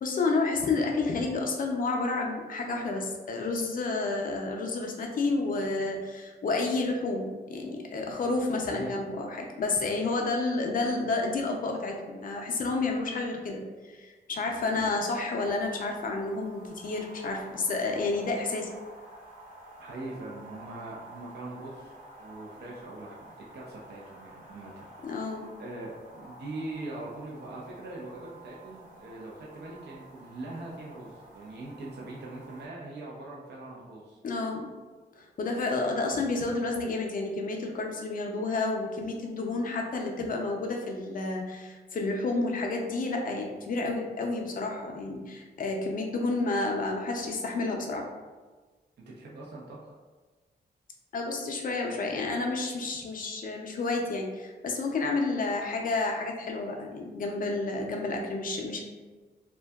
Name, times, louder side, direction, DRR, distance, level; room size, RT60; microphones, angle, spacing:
voice 1, 0.0-18.7 25.0-25.5 34.2-34.7 35.2-48.1 51.1-58.8, left 3 dB, 50° left, 1 dB, 0.4 m, -30 dB
voice 2, 8.6-9.0 19.8-21.9 22.2-24.9 25.2-34.2 49.1-50.0, right 2 dB, 70° right, -4 dB, 0.5 m, -42 dB
sound 1, 15.4-32.7, right 2 dB, 45° right, 1.0 m, -50 dB
2.6 x 2.2 x 2.2 m, 1.3 s
wide cardioid pair, 120°, 18 cm